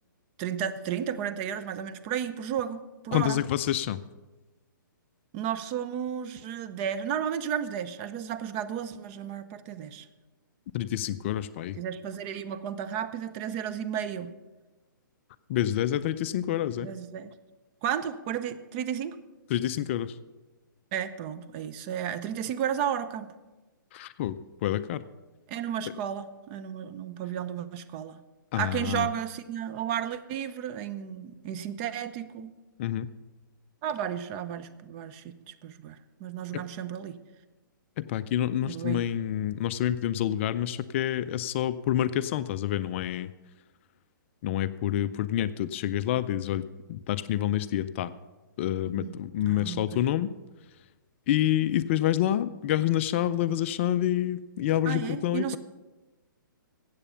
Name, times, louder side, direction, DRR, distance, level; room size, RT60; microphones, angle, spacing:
voice 1, 0.4-3.4 5.3-10.1 11.8-14.3 16.8-17.3 17.8-19.2 20.9-23.3 25.5-28.2 28.5-32.5 33.8-37.2 38.6-39.0 49.0-49.2 49.4-50.0 54.9-55.6, right 9 dB, 30° right, 10 dB, 0.7 m, -33 dB
voice 2, 3.1-4.0 10.7-11.8 15.5-16.9 19.5-20.1 23.9-25.0 28.5-29.1 32.8-33.1 36.5-36.6 38.0-43.3 44.4-48.1 48.6-50.3 51.3-55.6, left 12 dB, 35° left, 14 dB, 0.4 m, -28 dB
14.0 x 8.3 x 5.6 m, 1.2 s
hypercardioid pair, 145°, 11 cm